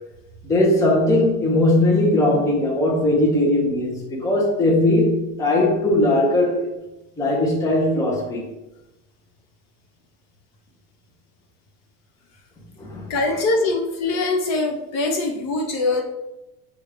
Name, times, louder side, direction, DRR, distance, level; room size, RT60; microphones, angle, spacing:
voice 1, 0.4-6.7 7.2-8.5 12.8-13.4, left 1 dB, 10° left, -3 dB, 0.6 m, -19 dB
voice 2, 13.1-16.0, left 2 dB, 45° left, 1 dB, 1.1 m, -22 dB
6.8 x 2.4 x 3.3 m, 0.97 s
supercardioid pair, 155°, 38 cm